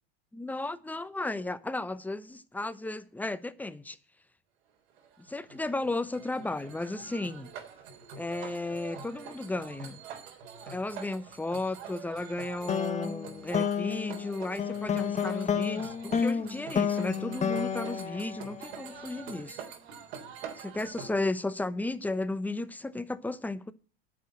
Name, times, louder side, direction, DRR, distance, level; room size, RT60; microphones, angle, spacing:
voice 1, 0.3-4.0 5.2-7.5 8.2-10.0 10.7-19.6 20.6-23.7, left 2 dB, 5° left, 0.8 m, -34 dB
sound 1, 5.0-21.1, right 7 dB, 80° right, 3.7 m, -45 dB
sound 2, 12.7-19.1, left 7 dB, 20° left, 1.2 m, -31 dB
10.0 x 6.6 x 8.7 m
supercardioid pair, 110°, 31 cm